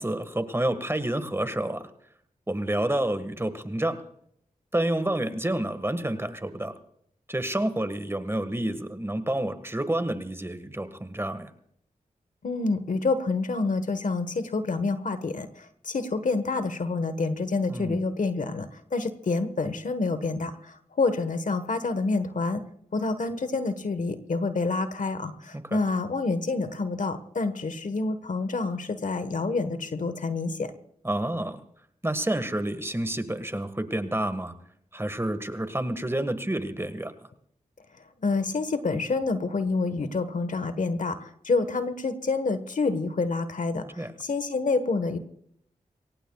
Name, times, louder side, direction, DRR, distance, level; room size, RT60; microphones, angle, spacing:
voice 1, 0.0-1.8 2.5-4.0 4.7-6.7 7.3-11.5 17.7-18.0 25.5-25.8 31.0-31.6 32.0-34.5 34.9-37.1 44.0-44.2, right 1 dB, 20° right, 11 dB, 1.7 m, -29 dB
voice 2, 12.4-22.6 22.9-30.7 38.2-45.2, left 3 dB, 65° left, 11 dB, 1.3 m, -28 dB
23.0 x 18.0 x 2.4 m, 0.68 s
cardioid pair, 45°, 14 cm